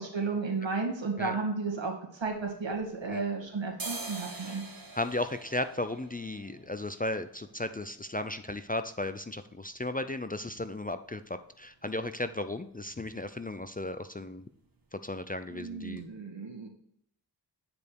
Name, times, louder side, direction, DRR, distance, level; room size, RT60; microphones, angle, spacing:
voice 1, 0.0-4.6 15.5-16.7, right 4 dB, 75° right, 1 dB, 2.2 m, -33 dB
sound 1, 2.2-3.3 3.6-11.3 11.6-11.7 12.0-12.6 12.9-13.1 13.4-13.6 13.9-14.6 14.9-15.1 15.6-15.7 16.0-16.1, right 3 dB, 50° right, 1.7 m, -46 dB
voice 2, 4.9-14.4 14.9-16.0, left 2 dB, 20° left, 10 dB, 0.5 m, -35 dB
9.2 x 5.1 x 4.6 m, 0.72 s
wide cardioid pair, 65°, 45 cm